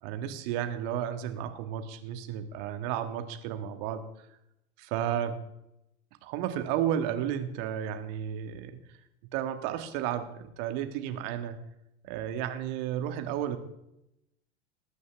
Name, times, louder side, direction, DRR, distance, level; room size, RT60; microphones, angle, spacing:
voice 1, 0.0-4.0 4.8-5.4 6.2-8.8 9.3-11.6 12.0-13.6, right 10 dB, 50° right, 7 dB, 1.8 m, -32 dB
21.0 x 9.2 x 3.5 m, 0.84 s
figure-of-eight pair, 85°, 35 cm